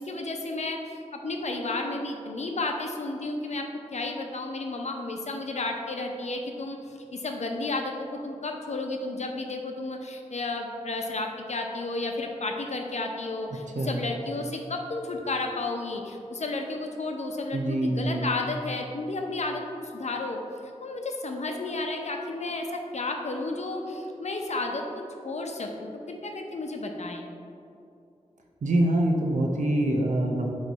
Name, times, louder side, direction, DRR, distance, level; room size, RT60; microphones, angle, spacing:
voice 1, 0.0-3.7 3.9-19.6 19.9-20.4 20.8-27.3, left 2 dB, 65° left, 2 dB, 0.7 m, -32 dB
voice 2, 17.5-18.3 28.6-30.5, right 1 dB, 90° right, 1 dB, 0.6 m, -25 dB
8.2 x 3.2 x 4.1 m, 2.6 s
wide cardioid pair, 70°, 12 cm